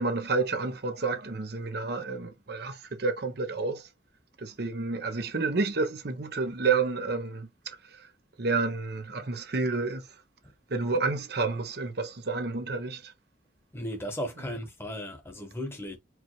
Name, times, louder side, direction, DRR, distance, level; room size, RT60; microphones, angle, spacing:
voice 1, 0.0-3.9 4.4-8.1 8.4-10.1 10.7-13.1, right 4 dB, 60° right, 0.8 m, -30 dB
voice 2, 13.7-16.0, equal, 15° left, 1.1 m, -36 dB
4.7 x 2.4 x 3.0 m
head